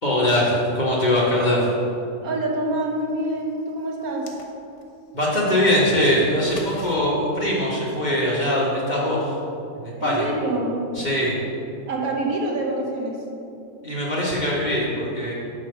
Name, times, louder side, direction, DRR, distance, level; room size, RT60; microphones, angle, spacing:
voice 1, 0.0-1.7 5.1-9.3 9.7-10.3 10.9-11.3 13.8-15.3, left 1 dB, 30° left, -6 dB, 1.3 m, -22 dB
voice 2, 2.2-4.4 10.0-10.8 11.9-13.2, right 2 dB, 70° right, -1 dB, 1.4 m, -26 dB
sound 1, 4.0-4.9 6.3-7.0, left 4 dB, 75° left, 1.3 m, -40 dB
9.2 x 3.3 x 6.5 m, 2.7 s
omnidirectional pair, 1.6 m